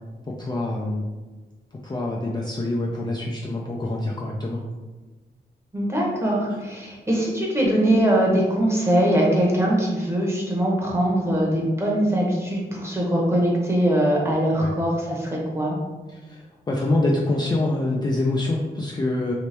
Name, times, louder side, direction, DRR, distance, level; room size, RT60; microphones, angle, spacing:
voice 1, 0.3-1.0 1.8-4.6 14.6-14.7 16.1-19.3, left 2 dB, 25° left, -3 dB, 0.3 m, -25 dB
voice 2, 5.7-15.7, right 1 dB, 15° right, -3 dB, 0.9 m, -22 dB
3.1 x 2.9 x 3.2 m, 1.2 s
wide cardioid pair, 125°, 18 cm